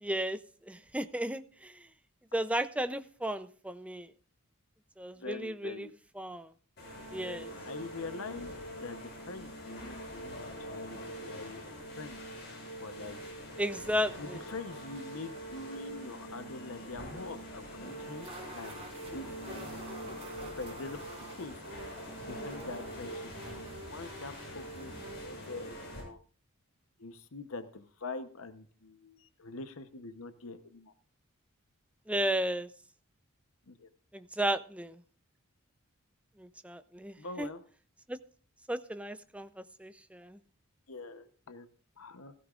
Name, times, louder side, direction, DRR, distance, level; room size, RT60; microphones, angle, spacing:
voice 1, 0.0-0.4 0.7-1.7 2.3-4.1 5.0-5.9 6.2-6.5 7.1-7.5 13.6-14.4 32.1-32.7 34.1-35.0 36.4-37.5 38.1-38.2 38.7-39.5 39.8-40.4, right 1 dB, 5° right, 11 dB, 0.5 m, -34 dB
voice 2, 5.2-5.9 7.0-11.7 12.0-12.2 12.8-13.2 14.2-18.3 18.5-19.7 20.6-21.0 21.4-21.6 22.3-24.9 25.2-26.2 27.0-30.9 33.7-33.9 37.2-37.6 40.9-41.7 42.0-42.3, left 3 dB, 75° left, 10 dB, 1.0 m, -44 dB
sound 1, 6.8-26.0, equal, 50° left, 7.4 m, -44 dB
sound 2, 17.8-25.2, right 1 dB, 30° right, 4.1 m, -48 dB
16.0 x 15.0 x 2.5 m, 0.41 s
head